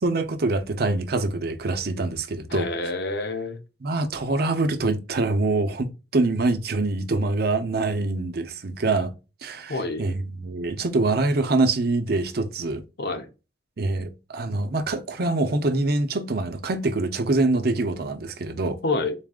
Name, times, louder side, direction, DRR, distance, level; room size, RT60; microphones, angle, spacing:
voice 1, 0.0-2.7 3.8-9.1 9.4-12.8 13.8-18.8, right 2 dB, 60° right, 0.7 m, -25 dB
voice 2, 2.5-3.6 9.7-10.0 13.0-13.3 18.8-19.1, left 3 dB, 65° left, 0.8 m, -27 dB
4.0 x 3.6 x 2.3 m
head